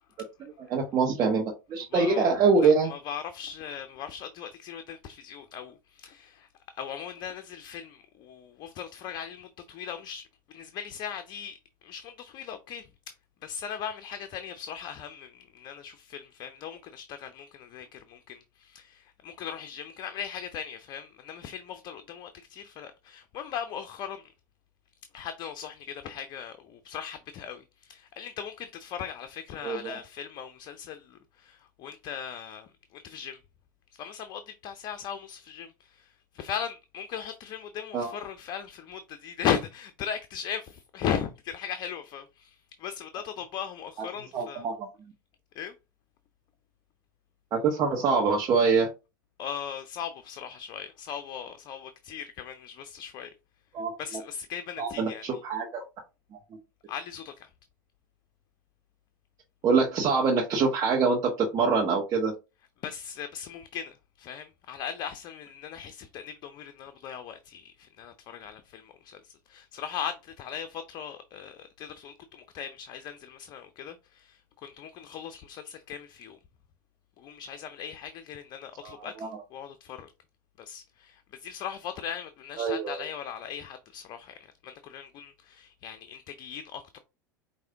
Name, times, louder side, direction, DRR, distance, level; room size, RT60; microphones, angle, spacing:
voice 1, 0.4-2.9 29.6-30.0 37.9-38.1 44.0-44.1 44.3-44.9 47.5-48.9 53.7-53.9 54.8-55.8 59.6-62.3 78.8-79.4 82.6-83.0, right 4 dB, 40° right, 1.2 m, -25 dB
voice 2, 1.9-2.2 2.8-6.5 6.7-12.9 13.4-24.3 25.1-33.4 33.9-44.6 45.6-45.7 49.4-53.3 54.0-55.4 56.9-57.5 62.8-76.4 77.2-80.1 80.6-87.0, left 8 dB, 45° left, 0.5 m, -38 dB
4.8 x 2.6 x 3.4 m
hypercardioid pair, 90°, 10 cm